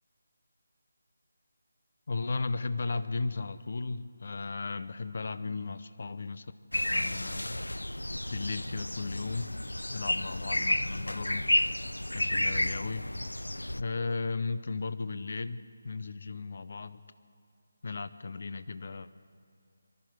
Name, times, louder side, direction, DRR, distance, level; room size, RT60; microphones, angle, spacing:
voice 1, 2.1-6.5 6.9-7.6 8.3-9.5 9.9-11.5 12.1-13.0 13.8-17.0 17.8-19.1, left 3 dB, 50° left, 13 dB, 0.7 m, -35 dB
sound 1, 6.7-13.8, left 1 dB, 85° left, 0.4 m, -31 dB
23.0 x 13.5 x 4.7 m, 2.5 s
figure-of-eight pair, 155°, 0 cm